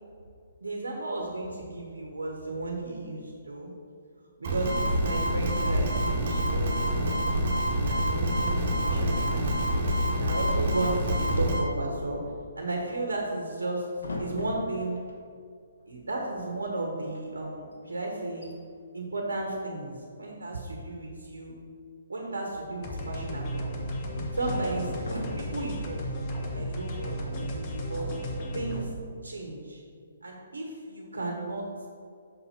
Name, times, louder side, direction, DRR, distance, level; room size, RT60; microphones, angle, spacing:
voice 1, 0.6-3.7 4.4-7.2 7.8-8.5 8.8-9.7 10.1-12.2 12.6-13.9 14.2-15.0 15.9-18.5 18.9-21.5 22.1-23.9 24.3-26.2 26.5-28.1 28.5-28.9 29.2-29.8 30.2-31.6, right 2 dB, 85° right, 0 dB, 1.1 m, -34 dB
sound 1, 4.4-11.6, equal, 55° right, 1.5 m, -26 dB
sound 2, 14.0-15.2 16.0-16.1 16.3-16.7 17.0-17.2 17.7-17.8 18.2-18.5 19.6-20.2 22.2-23.1 24.1-25.7, left 2 dB, 85° left, 1.1 m, -38 dB
sound 3, 22.8-28.8, equal, 35° left, 1.2 m, -34 dB
6.5 x 4.2 x 5.7 m, 2.2 s
hypercardioid pair, 140°, 0 cm